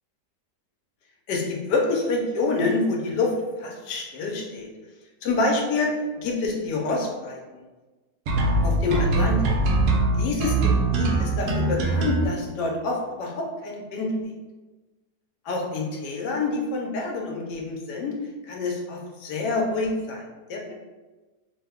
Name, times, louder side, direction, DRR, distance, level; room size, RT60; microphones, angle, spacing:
voice 1, 1.3-4.7 5.2-7.4 8.6-9.6 10.2-14.1 15.4-18.2 18.4-20.7, left 3 dB, 85° left, 0 dB, 1.3 m, -27 dB
sound 1, 8.3-12.3, right 2 dB, 70° right, 0.9 m, -22 dB
3.0 x 2.2 x 3.4 m, 1.2 s
omnidirectional pair, 1.8 m